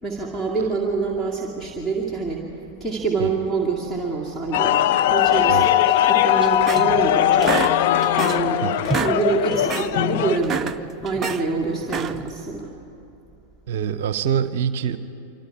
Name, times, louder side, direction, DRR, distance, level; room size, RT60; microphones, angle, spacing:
voice 1, 0.0-2.4 2.8-4.8 5.1-7.6 8.2-8.6 9.0-12.7, right 4 dB, 10° left, 0 dB, 2.3 m, -26 dB
sound 1, 4.5-10.4, left 12 dB, 50° left, 0.7 m, -19 dB
sound 2, 6.4-7.1 7.4-8.5 8.8-9.2 9.5-9.9 10.3-11.4 11.8-12.3, right 6 dB, 20° right, 0.7 m, -28 dB
voice 2, 13.7-15.0, right 8 dB, 55° right, 14 dB, 0.7 m, -24 dB
26.0 x 26.0 x 4.8 m, 2.6 s
figure-of-eight pair, 90°, 0 cm